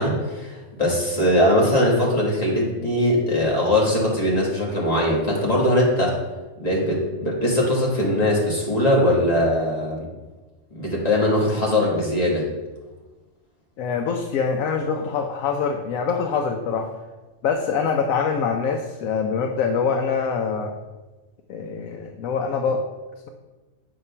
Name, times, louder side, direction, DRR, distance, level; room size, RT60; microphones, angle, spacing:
voice 1, 0.0-6.1 6.6-10.1 10.7-12.4, left 1 dB, 30° left, -4 dB, 1.3 m, -21 dB
voice 2, 13.8-16.9 17.4-20.7 21.5-22.8, left 5 dB, 85° left, 3 dB, 1.0 m, -24 dB
7.2 x 2.9 x 5.4 m, 1.2 s
omnidirectional pair, 1.4 m